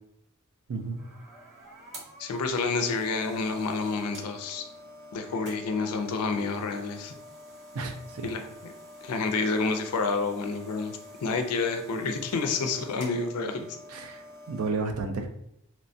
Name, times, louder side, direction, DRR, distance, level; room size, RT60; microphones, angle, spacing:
sound 1, 0.7-14.7, equal, 50° right, 0.8 m, -47 dB
voice 1, 0.7-1.0 7.7-8.3 13.9-15.3, right 3 dB, 70° right, 6 dB, 0.4 m, -32 dB
voice 2, 2.2-4.7 5.1-7.1 8.2-8.7 9.0-13.6, left 4 dB, 85° left, 6 dB, 0.4 m, -29 dB
2.9 x 2.2 x 2.6 m, 0.73 s
head